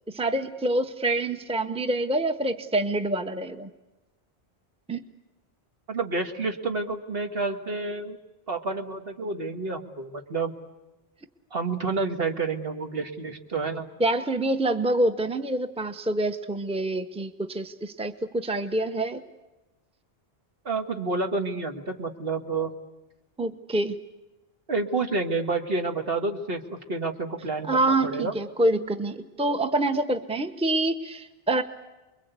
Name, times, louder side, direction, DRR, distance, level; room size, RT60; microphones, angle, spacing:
voice 1, 0.1-3.7 4.9-5.1 14.0-19.2 23.4-24.0 27.7-31.6, right 2 dB, 5° right, 8 dB, 0.9 m, -26 dB
voice 2, 5.9-8.2 8.5-10.5 11.5-13.9 20.7-22.7 24.7-28.3, right 3 dB, 65° right, 4 dB, 2.1 m, -29 dB
29.0 x 22.5 x 8.3 m, 1.1 s
omnidirectional pair, 1.1 m